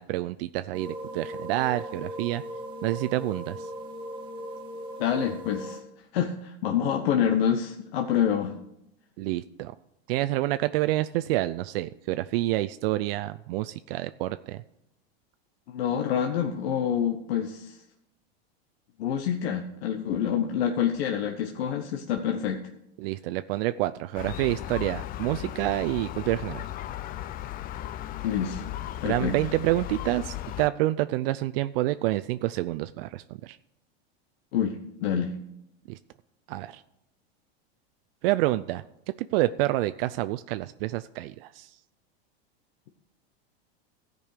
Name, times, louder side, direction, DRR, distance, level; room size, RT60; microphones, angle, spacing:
voice 1, 0.0-2.4 2.8-3.7 9.2-9.7 10.1-14.6 23.0-26.7 29.0-33.6 35.9-36.0 36.5-36.8 38.2-38.8 39.2-41.7, right 16 dB, 65° right, 11 dB, 0.5 m, -28 dB
sound 1, 0.7-5.8, equal, 15° right, 2.2 m, -38 dB
voice 2, 5.0-5.8 6.1-8.5 15.7-17.8 19.0-22.6 28.2-28.6 29.0-29.4 34.5-35.3, left 8 dB, 75° left, 3 dB, 1.1 m, -27 dB
Gull seagull, 24.1-30.7, left 13 dB, 30° left, 0.4 m, -36 dB
14.5 x 5.3 x 6.6 m, 0.82 s
supercardioid pair, 115°, 31 cm